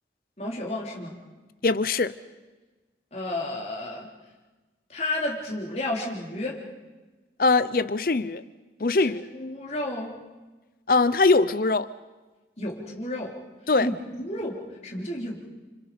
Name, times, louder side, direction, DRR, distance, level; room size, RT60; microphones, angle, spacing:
voice 1, 0.4-1.1 3.1-4.1 4.9-6.6 9.0-10.2 12.6-13.4 13.8-15.5, left 1 dB, 40° left, 3.9 m, -32 dB
voice 2, 1.6-2.1 7.4-8.4 8.8-9.2 10.9-11.9 13.7-13.9, left 3 dB, 55° left, 0.7 m, -21 dB
30.0 x 26.0 x 5.2 m
head